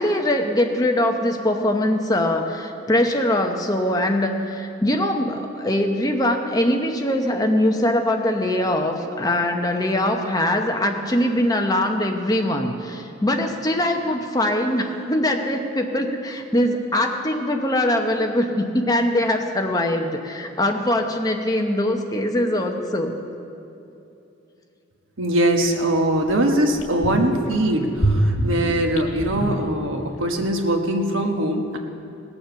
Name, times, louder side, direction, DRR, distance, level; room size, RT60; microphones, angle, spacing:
voice 1, 0.0-23.1, left 1 dB, 20° left, 3 dB, 0.8 m, -22 dB
voice 2, 25.2-31.8, right 1 dB, 80° right, 3 dB, 1.2 m, -22 dB
sound 1, 25.7-25.8 26.3-26.4 26.7-27.5 28.0-30.2 30.5-30.6, right 1 dB, 70° left, 1.9 m, -24 dB
18.0 x 7.1 x 6.9 m, 2.8 s
head